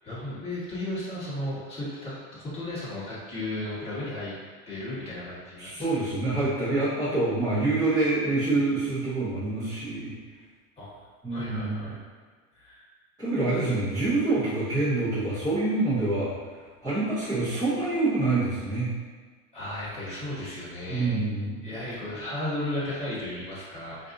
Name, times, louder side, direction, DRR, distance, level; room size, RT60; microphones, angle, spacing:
voice 1, 0.0-4.3 4.7-5.9 10.8-11.0 11.3-11.9 12.5-12.8 19.5-21.2 21.6-24.1, left 1 dB, 15° left, -10 dB, 1.1 m, -35 dB
voice 2, 5.6-10.2 11.2-11.9 13.2-16.3 16.8-18.9 20.9-21.7, right 2 dB, 10° right, -15 dB, 0.8 m, -26 dB
4.1 x 2.5 x 2.5 m, 1.5 s
supercardioid pair, 150°, 43 cm